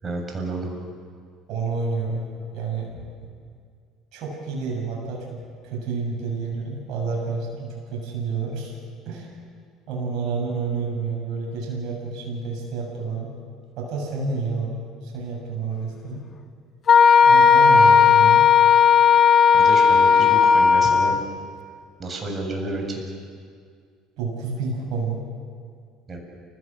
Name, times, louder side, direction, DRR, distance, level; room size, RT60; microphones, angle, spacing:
voice 1, 0.0-0.7 19.5-21.2 22.0-23.0 26.1-26.2, right 2 dB, 30° right, 1 dB, 7.6 m, -30 dB
voice 2, 1.5-2.2 2.5-2.9 4.1-8.7 9.0-9.3 9.9-13.3 13.8-14.7 15.0-16.2 17.2-18.5 24.2-25.2, right 4 dB, 60° right, -2 dB, 7.3 m, -29 dB
Wind instrument woodwind instrument, 16.9-21.2, left 6 dB, 40° left, 1.5 m, -14 dB
30.0 x 16.5 x 8.0 m, 2.1 s
hypercardioid pair, 65°, 0 cm